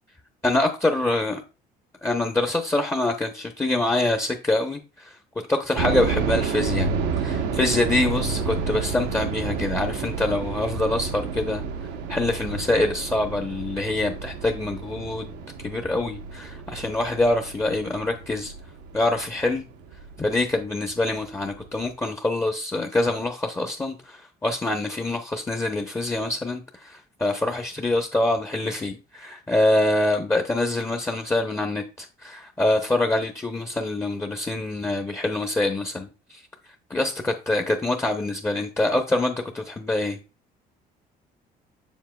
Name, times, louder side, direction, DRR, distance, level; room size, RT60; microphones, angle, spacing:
voice 1, 0.4-1.4 2.0-5.1 5.5-6.9 7.2-11.6 12.1-15.4 15.6-18.5 18.9-19.6 20.2-36.4 36.9-40.2, left 2 dB, 15° left, 0.8 m, -25 dB
sound 1, 5.8-20.6 20.9-21.0 21.6-21.9, right 5 dB, 90° right, 0.9 m, -30 dB
7.3 x 7.0 x 2.3 m
cardioid pair, 110°, 17 cm